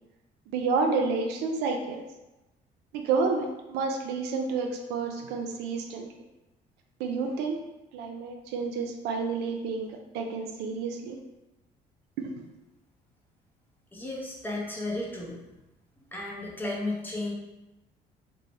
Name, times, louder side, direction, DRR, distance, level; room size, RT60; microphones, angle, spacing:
voice 1, 0.5-2.0 2.9-6.1 7.0-7.6 7.9-9.9 10.1-11.2 12.2-12.5, right 4 dB, 90° right, 3 dB, 0.4 m, -30 dB
voice 2, 13.9-15.4 16.1-17.3, left 2 dB, 10° left, -3 dB, 0.6 m, -33 dB
3.0 x 2.0 x 2.6 m, 1.0 s
cardioid pair, 110°, 17 cm